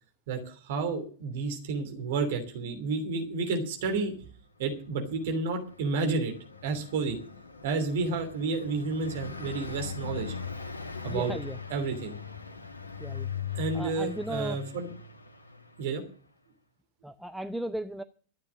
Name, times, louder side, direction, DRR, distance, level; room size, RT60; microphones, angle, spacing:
voice 1, 0.3-4.1 4.6-6.3 6.6-7.2 7.6-10.3 11.0-11.3 11.7-12.1 13.5-14.9 15.8-16.0, right 4 dB, 55° right, 5 dB, 2.9 m, -31 dB
Car passing by, 5.0-16.0, left 6 dB, 80° left, 1.3 m, -40 dB
voice 2, 11.1-11.6 13.0-13.3 13.7-14.6 17.0-18.0, right 1 dB, ahead, 10 dB, 0.7 m, -36 dB
14.0 x 9.3 x 6.3 m, 0.43 s
figure-of-eight pair, 90°, 0 cm